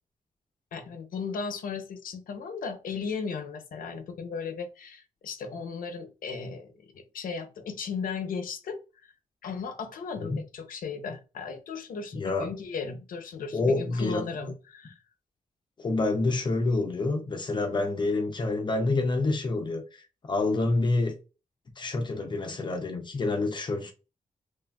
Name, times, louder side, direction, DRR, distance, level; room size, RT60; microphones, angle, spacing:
voice 1, 0.7-9.1 9.4-14.9, left 5 dB, 90° left, 0.6 m, -36 dB
voice 2, 12.1-12.5 13.5-14.3 15.8-21.1 21.8-23.9, left 2 dB, 35° left, 0.5 m, -27 dB
3.2 x 2.4 x 2.2 m
wide cardioid pair, 165°, 14 cm